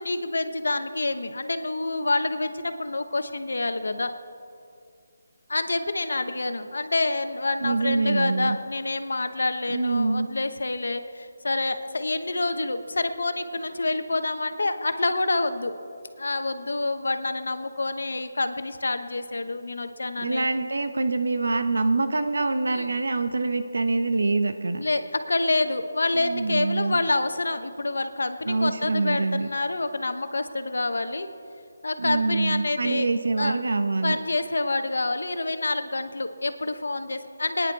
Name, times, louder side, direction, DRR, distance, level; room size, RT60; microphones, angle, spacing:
voice 1, 0.0-4.1 5.5-15.7 16.2-20.5 22.7-22.9 24.8-31.3 31.8-33.1 33.4-33.6 34.0-37.7, left 2 dB, 85° left, 9 dB, 1.0 m, -27 dB
voice 2, 7.6-8.6 9.7-10.3 20.2-24.8 26.2-27.0 28.4-29.5 32.0-34.2, right 3 dB, 80° right, 9 dB, 1.0 m, -25 dB
23.5 x 10.0 x 4.2 m, 2.5 s
hypercardioid pair, 180°, 0 cm